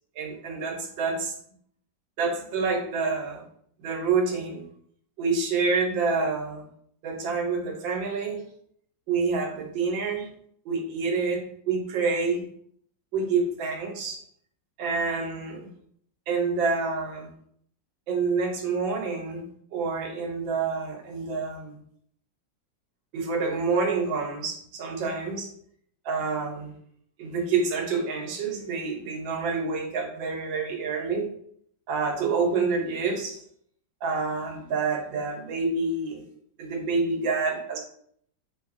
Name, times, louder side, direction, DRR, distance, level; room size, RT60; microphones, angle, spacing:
voice 1, 0.2-1.3 2.2-3.4 3.8-4.7 5.2-6.7 7.0-8.4 9.1-10.3 10.6-12.5 13.1-14.2 14.8-15.7 16.3-17.3 18.1-21.8 23.1-25.5 26.0-26.7 27.2-31.3 31.9-33.4 34.0-36.2 36.6-37.8, right 4 dB, 90° right, 2 dB, 1.5 m, -27 dB
3.3 x 3.2 x 2.5 m, 0.64 s
omnidirectional pair, 2.0 m